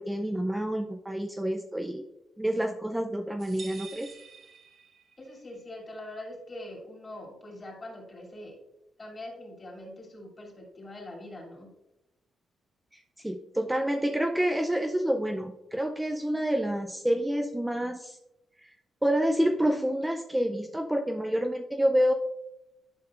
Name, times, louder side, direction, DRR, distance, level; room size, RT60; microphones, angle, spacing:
voice 1, 0.0-2.0 2.4-4.1 13.2-18.2 18.6-18.7 19.0-22.1, equal, 5° right, 4 dB, 0.5 m, -28 dB
sound 1, 3.4-5.3, right 5 dB, 55° right, 1.4 m, -48 dB
voice 2, 5.2-8.6 9.0-11.7, left 1 dB, 30° left, 0 dB, 2.7 m, -43 dB
11.0 x 5.5 x 2.5 m, 0.92 s
cardioid pair, 105°, 0 cm